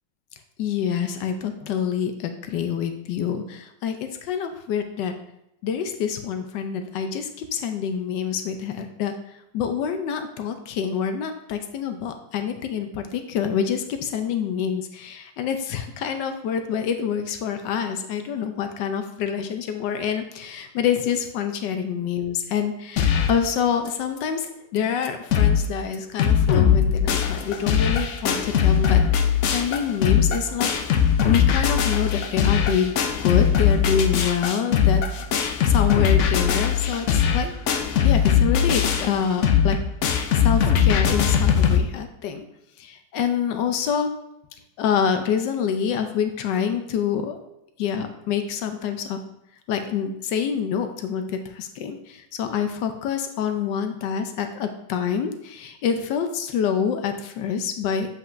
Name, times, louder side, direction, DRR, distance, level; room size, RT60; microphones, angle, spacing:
voice 1, 0.6-4.0 4.3-5.1 5.6-9.1 9.5-24.5 24.7-30.7 31.2-35.0 35.6-37.5 38.0-39.8 40.4-42.4 42.8-44.1 44.8-47.4 47.8-49.2 49.7-58.1, left 7 dB, 90° left, 7 dB, 1.3 m, -26 dB
sound 1, 23.0-23.4 23.9-24.0 24.2-24.3 24.8-24.9 25.0-25.7 25.9-41.8, left 8 dB, 70° left, 0.7 m, -20 dB
7.5 x 5.5 x 2.6 m, 0.84 s
omnidirectional pair, 1.9 m